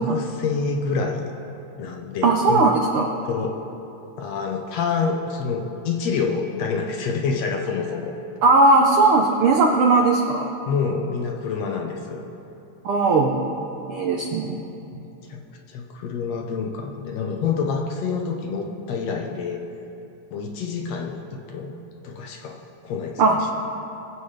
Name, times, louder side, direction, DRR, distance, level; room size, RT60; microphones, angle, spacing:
voice 1, 0.0-1.3 1.8-2.7 3.2-3.6 4.2-8.1 10.7-12.2 14.4-14.5 14.9-15.4 15.7-19.6 20.3-21.7 22.0-23.5, left 5 dB, 70° left, 2 dB, 1.7 m, -27 dB
voice 2, 2.2-3.1 8.4-10.5 12.8-13.5 13.9-14.6 23.2-23.4, right 3 dB, 90° right, 1 dB, 1.2 m, -18 dB
22.0 x 8.1 x 3.3 m, 2.9 s
omnidirectional pair, 3.5 m